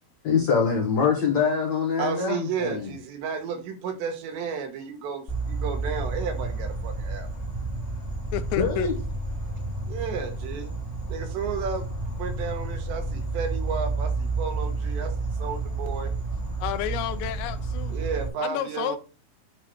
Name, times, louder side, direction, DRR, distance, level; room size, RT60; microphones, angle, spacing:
voice 1, 0.2-2.9 8.6-8.9, left 6 dB, 60° left, 2.0 m, -24 dB
voice 2, 2.0-7.3 9.9-10.7 11.1-11.9 12.2-16.1 17.9-19.0, right 6 dB, 80° right, 3.4 m, -32 dB
Insect, 5.3-18.3, right 3 dB, 20° left, 2.7 m, -30 dB
voice 3, 8.3-8.9 16.6-18.0 18.4-19.0, left 12 dB, 80° left, 2.9 m, -30 dB
9.6 x 4.1 x 4.9 m
omnidirectional pair, 5.1 m